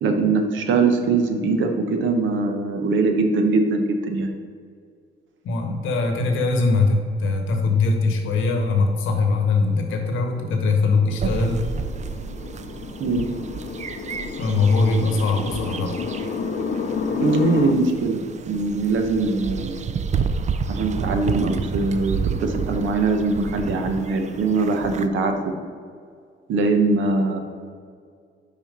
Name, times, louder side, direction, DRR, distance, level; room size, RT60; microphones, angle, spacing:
voice 1, 0.0-4.3 13.0-13.3 17.2-18.2 18.5-19.8 20.7-25.5 26.5-27.4, right 3 dB, 75° right, 5 dB, 0.9 m, -22 dB
voice 2, 5.4-11.6 14.4-16.0, left 3 dB, 80° left, 4 dB, 1.1 m, -21 dB
sound 1, 9.7-17.7, left 5 dB, 50° left, 0.6 m, -30 dB
Broutage cheval, 11.2-25.1, right 6 dB, 35° right, 0.4 m, -30 dB
5.6 x 4.4 x 5.3 m, 2.1 s
cardioid pair, 90°, 20 cm